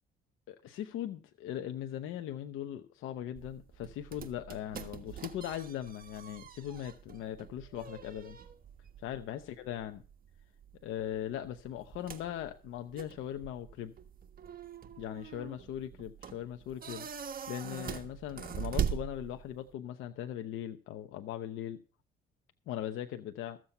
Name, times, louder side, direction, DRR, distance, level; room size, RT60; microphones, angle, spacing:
voice 1, 0.5-8.4 9.0-10.0 10.8-13.9 15.0-21.8 22.7-23.6, left 11 dB, 90° left, 0.8 m, -40 dB
sound 1, 3.3-19.7, right 8 dB, 45° right, 1.4 m, -42 dB
14.5 x 7.5 x 5.5 m
cardioid pair, 90°, 20 cm